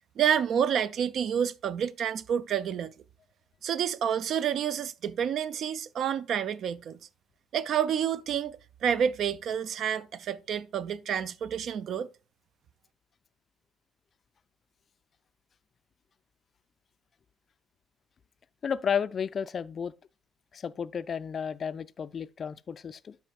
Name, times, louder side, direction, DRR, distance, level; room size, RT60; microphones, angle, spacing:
voice 1, 0.2-2.9 3.6-7.0 7.5-12.1, right 8 dB, 55° right, 0.4 m, -29 dB
voice 2, 18.6-19.9 20.5-23.2, left 7 dB, 45° left, 0.3 m, -32 dB
11.5 x 5.3 x 2.3 m
figure-of-eight pair, 45°, 0 cm